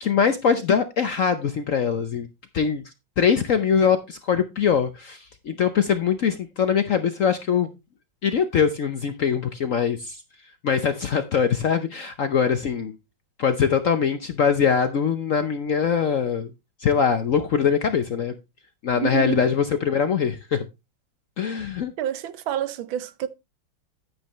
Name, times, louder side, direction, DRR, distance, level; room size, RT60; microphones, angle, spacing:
voice 1, 0.0-2.3 2.5-7.7 8.2-10.2 10.6-13.0 13.4-16.5 16.8-18.3 18.8-20.7 21.4-21.9, left 7 dB, 60° left, 0.8 m, -22 dB
voice 2, 19.0-19.5 22.0-23.3, right 11 dB, 80° right, 1.6 m, -28 dB
9.9 x 9.3 x 3.0 m
omnidirectional pair, 2.2 m